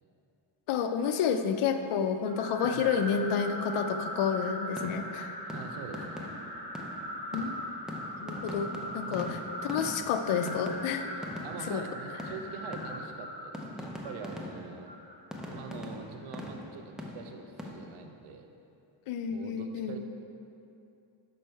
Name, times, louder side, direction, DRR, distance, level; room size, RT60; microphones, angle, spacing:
voice 1, 0.7-5.4 7.3-7.7 8.2-11.1 11.7-11.8 19.1-20.0, left 7 dB, 80° left, 8 dB, 0.6 m, -30 dB
sound 1, 2.2-15.6, equal, 15° left, 1.2 m, -40 dB
voice 2, 2.5-3.1 5.4-6.4 9.0-9.3 11.1-14.9 15.5-18.5 19.3-20.0, right 6 dB, 85° right, 5 dB, 0.7 m, -44 dB
sound 2, 4.8-5.2 5.5-11.8 12.2-13.3 13.5-14.8 15.3-17.7, left 1 dB, ahead, 0.6 m, -42 dB
6.5 x 5.4 x 4.5 m, 2.7 s
cardioid pair, 125°, 49 cm